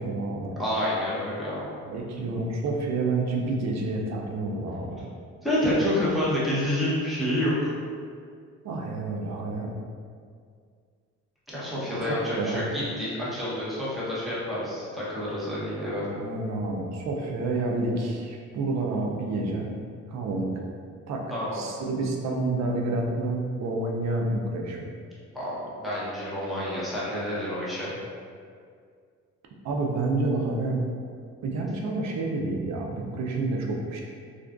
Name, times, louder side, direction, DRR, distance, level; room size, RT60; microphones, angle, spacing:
voice 1, 0.0-0.5 1.9-5.0 8.6-9.7 12.0-12.6 15.8-19.7 20.1-20.5 21.1-21.3 21.5-24.9 29.6-30.8 31.4-34.0, right 2 dB, 60° right, 0 dB, 0.5 m, -29 dB
voice 2, 0.6-1.6 5.4-7.7 11.5-16.1 21.3-21.6 25.3-25.6 25.8-27.9, left 1 dB, ahead, -9 dB, 0.8 m, -28 dB
2.4 x 2.2 x 2.3 m, 2.2 s
cardioid pair, 90°, 30 cm